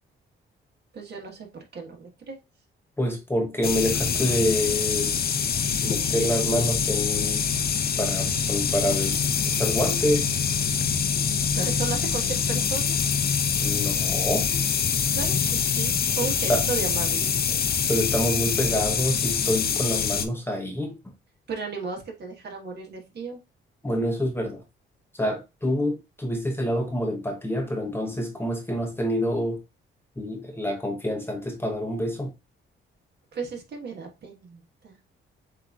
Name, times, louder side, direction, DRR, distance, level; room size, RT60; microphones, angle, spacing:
voice 1, 0.9-2.4 11.5-13.1 15.1-17.6 21.5-23.4 33.3-35.0, right 4 dB, 55° right, 1.5 m, -35 dB
voice 2, 3.0-5.2 5.8-7.5 8.0-9.2 9.4-10.3 13.6-14.5 16.5-16.6 17.9-20.9 23.8-24.6 25.2-29.6 30.2-32.3, equal, 10° left, 0.8 m, -27 dB
sound 1, 3.6-20.3, left 6 dB, 50° left, 0.6 m, -25 dB
7.4 x 2.7 x 2.4 m
cardioid pair, 120°, 21 cm